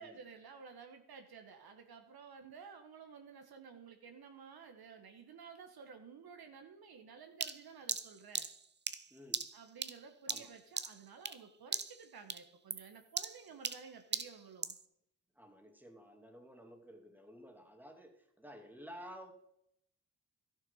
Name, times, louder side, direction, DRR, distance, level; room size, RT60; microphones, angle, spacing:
voice 1, 0.0-8.5 9.5-14.8, right 6 dB, 60° right, 6 dB, 1.3 m, -53 dB
sound 1, 7.4-11.5 11.7-12.0 12.3-14.8, right 5 dB, 25° right, 0.7 m, -39 dB
voice 2, 9.1-9.5 10.3-10.5 15.4-19.3, equal, 5° right, 4 dB, 2.2 m, -53 dB
12.5 x 6.8 x 5.6 m, 0.77 s
supercardioid pair, 45°, 41 cm